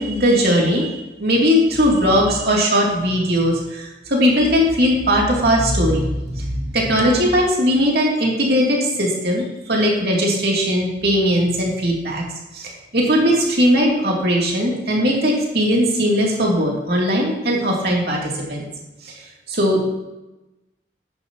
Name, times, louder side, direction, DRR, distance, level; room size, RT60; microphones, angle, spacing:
voice 1, 0.0-12.2 12.5-18.7 19.0-19.1 19.5-19.9, equal, 60° right, -2 dB, 2.6 m, -19 dB
10.5 x 9.6 x 2.9 m, 1.0 s
head